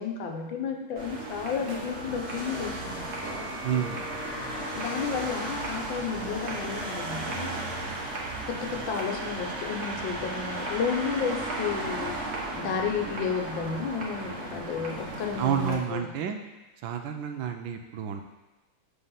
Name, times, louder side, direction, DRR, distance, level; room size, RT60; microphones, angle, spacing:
voice 1, 0.0-3.0 4.7-7.5 8.5-12.2 12.6-16.0, left 6 dB, 75° left, 3 dB, 1.5 m, -32 dB
sound 1, 1.0-15.8, right 2 dB, 40° right, 1.1 m, -35 dB
sound 2, 1.3-8.2, left 2 dB, 40° left, 0.8 m, -43 dB
voice 2, 3.6-4.1 15.4-16.4 16.8-18.2, right 8 dB, 75° right, 5 dB, 1.3 m, -30 dB
7.1 x 3.4 x 5.6 m, 1.1 s
omnidirectional pair, 2.2 m